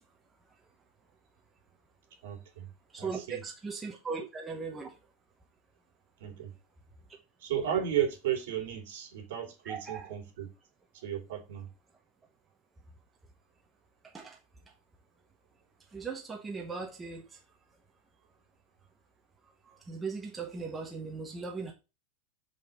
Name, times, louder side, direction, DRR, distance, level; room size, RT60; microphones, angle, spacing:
voice 1, 2.2-2.7 3.0-3.4 6.2-6.5 7.4-10.5 10.9-11.7, right 9 dB, 65° right, 3.1 m, -34 dB
voice 2, 2.9-4.9 9.6-10.1 14.1-14.4 15.9-17.2 19.7-21.7, right 4 dB, 10° right, 1.0 m, -38 dB
5.5 x 5.2 x 6.5 m
supercardioid pair, 175°, 0 cm